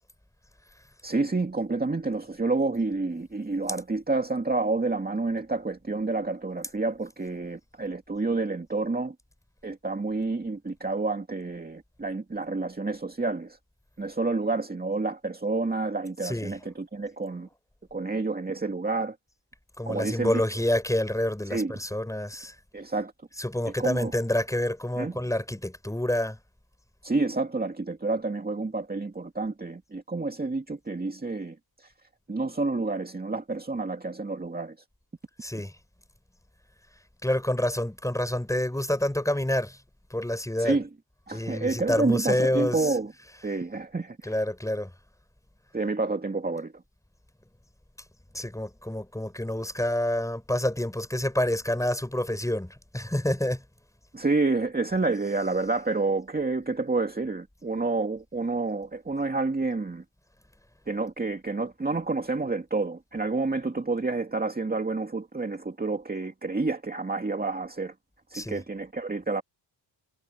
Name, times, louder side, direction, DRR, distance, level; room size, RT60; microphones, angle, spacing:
voice 1, 1.0-9.1 9.6-13.6 14.0-17.5 17.9-19.2 19.9-20.4 21.5-21.7 22.7-23.1 23.6-24.1 25.0-25.1 27.0-31.9 32.3-34.8 40.6-40.9 41.3-43.1 43.4-44.4 45.7-46.8 54.1-60.0 60.9-67.9 68.3-69.4, right 3 dB, 20° right, 2.3 m, -29 dB
voice 2, 16.2-16.6 19.8-22.5 23.4-26.4 35.4-35.7 37.2-39.8 40.1-40.8 41.3-42.9 44.2-44.9 48.3-53.6 68.3-68.6, left 1 dB, 5° left, 4.5 m, -28 dB
cardioid pair, 85°, 45 cm